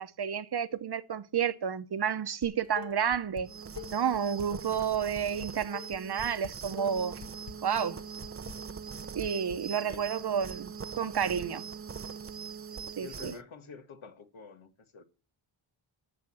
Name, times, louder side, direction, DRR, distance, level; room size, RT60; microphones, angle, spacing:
voice 1, 0.0-3.5 3.9-7.2 7.6-8.0 9.1-11.6 13.0-13.3, right 8 dB, 55° right, 0.9 m, -31 dB
Dishes pots and pans, 2.4-3.4 3.8-9.6, left 7 dB, 60° left, 1.4 m, -45 dB
sound 1, 3.4-13.4, right 6 dB, 30° right, 0.6 m, -42 dB
voice 2, 9.7-10.0 13.0-15.0, left 5 dB, 80° left, 1.9 m, -48 dB
11.5 x 6.8 x 7.4 m
wide cardioid pair, 100°, 47 cm